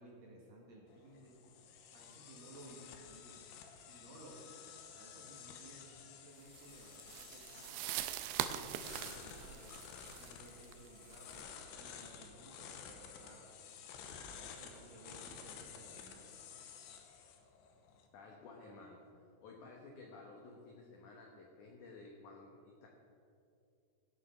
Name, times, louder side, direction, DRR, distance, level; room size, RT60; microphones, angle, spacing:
voice 1, 0.0-1.4 1.9-3.5 3.9-4.6 4.9-8.0 8.5-9.8 10.2-13.5 14.3-16.3, right 1 dB, 55° right, -2 dB, 2.1 m, -57 dB
sound 1, 0.9-18.1, left 7 dB, 90° left, 3.3 m, -53 dB
sound 2, 6.5-11.4, right 11 dB, 85° right, 2.6 m, -43 dB
voice 2, 18.1-22.9, left 3 dB, 70° left, 0 dB, 1.9 m, -54 dB
19.0 x 6.7 x 5.8 m, 2.5 s
omnidirectional pair, 5.1 m